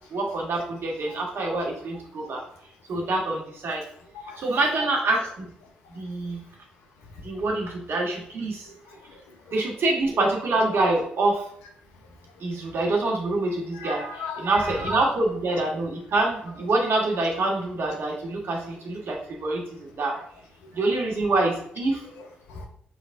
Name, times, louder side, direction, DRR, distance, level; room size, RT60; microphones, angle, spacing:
voice 1, 0.1-2.4 2.9-3.8 4.4-5.5 5.9-6.4 7.2-8.7 9.5-11.4 12.4-20.1 20.7-22.0, right 2 dB, 65° right, -1 dB, 1.3 m, -26 dB
voice 2, 8.9-9.4 13.7-14.8 20.1-20.2 22.2-22.7, left 3 dB, 90° left, 2 dB, 0.8 m, -38 dB
5.8 x 3.4 x 2.6 m, 0.66 s
hypercardioid pair, 45°, 4 cm